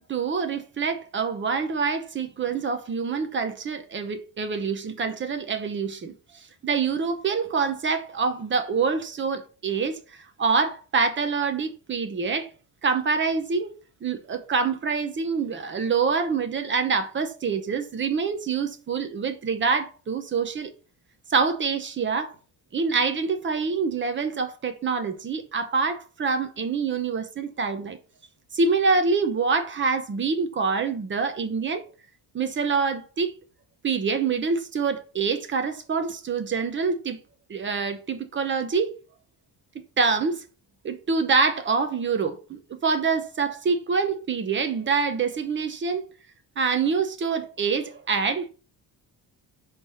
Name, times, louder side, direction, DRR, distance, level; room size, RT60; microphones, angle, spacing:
voice 1, 0.1-12.5 12.8-13.7 14.0-20.7 21.3-22.3 22.7-28.0 28.5-31.8 32.3-33.3 33.8-37.2 37.5-38.9 40.0-40.4 40.8-46.1 46.6-48.5, right 5 dB, 25° right, 0.7 m, -26 dB
5.9 x 3.4 x 5.5 m
cardioid pair, 180°, 42 cm